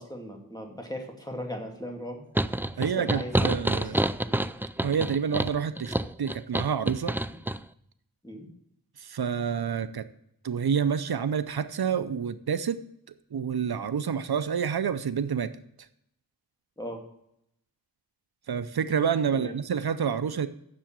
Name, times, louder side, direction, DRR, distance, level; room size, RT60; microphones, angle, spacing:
voice 1, 0.0-2.2 2.8-3.9 4.3-4.4 7.3-7.4 8.2-8.5 16.8-17.0 19.3-19.5, equal, 10° left, 2.5 m, -38 dB
sound 1, 2.4-7.6, right 1 dB, 5° right, 0.3 m, -28 dB
voice 2, 2.7-4.0 4.8-7.2 9.0-10.0 10.4-12.8 13.3-15.5 18.5-20.5, right 7 dB, 85° right, 0.6 m, -28 dB
7.5 x 6.9 x 7.4 m
wide cardioid pair, 40°, 37 cm